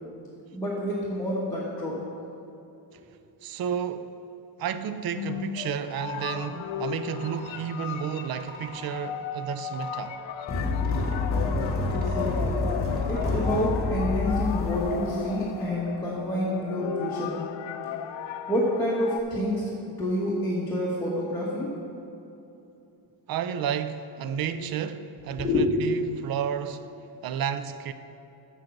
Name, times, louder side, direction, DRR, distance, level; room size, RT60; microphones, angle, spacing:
voice 1, 0.5-2.0 11.9-12.8 13.0-17.4 18.5-21.7 25.3-25.7, left 1 dB, 5° left, 1.2 m, -28 dB
voice 2, 3.4-4.1 4.6-10.2 23.3-26.9 27.2-27.9, right 8 dB, 50° right, 0.5 m, -31 dB
sound 1, 4.9-19.2, left 9 dB, 75° left, 0.6 m, -35 dB
sound 2, 5.8-6.3 6.9-7.6 8.2-8.8 9.5-10.1 10.8-11.2 11.8-12.4 12.9-13.4, right 2 dB, 20° right, 1.3 m, -45 dB
sound 3, 10.5-15.7, left 3 dB, 30° left, 1.6 m, -28 dB
7.8 x 6.3 x 7.3 m
wide cardioid pair, 155°, 45 cm